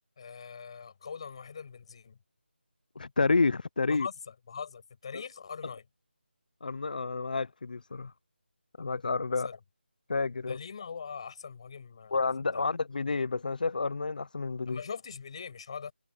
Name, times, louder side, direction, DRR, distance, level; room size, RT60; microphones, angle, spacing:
voice 1, 0.2-2.2 3.9-5.8 9.3-9.6 10.5-12.3 12.5-12.6 14.7-15.9, left 6 dB, 30° left, 7.5 m, -42 dB
voice 2, 3.0-4.1 5.1-5.2 6.6-8.1 8.8-9.5 10.1-10.6 12.1-14.8, left 4 dB, 45° left, 0.7 m, -29 dB
figure-of-eight pair, 175°, 6 cm